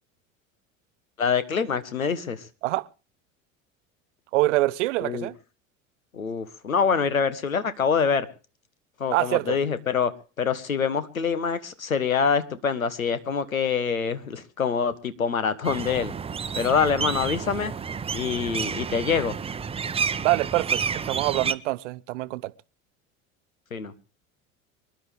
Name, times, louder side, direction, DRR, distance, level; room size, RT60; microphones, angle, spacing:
voice 1, 1.2-2.4 5.0-5.3 6.1-8.3 9.0-10.1 10.4-16.1 16.5-17.7 18.1-19.4 23.7-23.9, left 6 dB, 85° left, 1.5 m, -25 dB
voice 2, 4.3-5.3 9.1-9.6 20.2-22.5, right 19 dB, 60° right, 0.9 m, -25 dB
sound 1, 15.6-21.5, right 6 dB, 15° right, 0.7 m, -30 dB
25.5 x 11.5 x 3.6 m
figure-of-eight pair, 70°, 40 cm